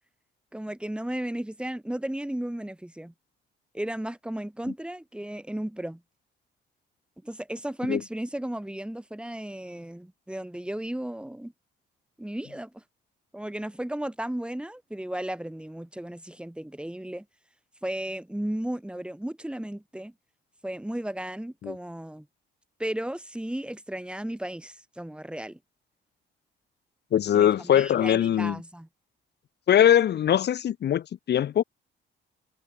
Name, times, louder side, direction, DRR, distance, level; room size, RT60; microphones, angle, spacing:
voice 1, 0.5-3.1 3.7-6.0 7.2-11.5 12.2-12.8 13.3-17.2 17.8-20.1 20.6-22.3 22.8-25.6 27.3-28.9, right 1 dB, 5° right, 2.6 m, -34 dB
voice 2, 27.1-28.6 29.7-31.6, left 10 dB, 60° left, 1.1 m, -21 dB
cardioid pair, 90°, 20 cm